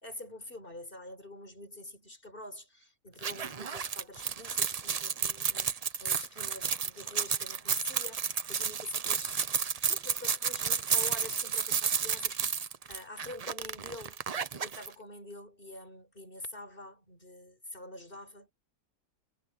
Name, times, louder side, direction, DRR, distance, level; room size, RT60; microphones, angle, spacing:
voice 1, 0.0-9.4 9.9-12.6 12.9-14.2 14.5-18.5, left 1 dB, 35° left, 4.7 m, -46 dB
sound 1, 3.2-14.9, right 6 dB, 70° right, 0.3 m, -32 dB
omnidirectional pair, 1.6 m